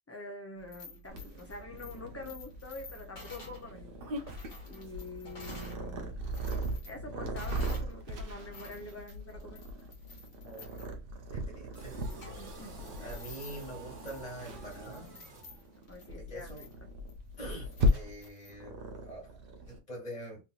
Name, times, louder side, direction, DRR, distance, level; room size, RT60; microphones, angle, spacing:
voice 1, 0.1-3.9 4.7-6.1 6.8-9.7 12.1-13.1 15.9-16.7, left 2 dB, 15° left, 0.5 m, -46 dB
sound 1, 0.6-5.8 6.2-7.9 8.3-18.5, left 3 dB, 80° left, 1.5 m, -52 dB
Purr, 1.1-19.8, equal, 55° right, 0.8 m, -37 dB
voice 2, 11.3-12.0 13.0-15.1 16.1-16.7 17.4-20.4, right 1 dB, 35° left, 1.8 m, -45 dB
sound 2, 11.7-16.0, right 2 dB, 80° right, 1.4 m, -49 dB
3.4 x 2.8 x 2.4 m
omnidirectional pair, 1.3 m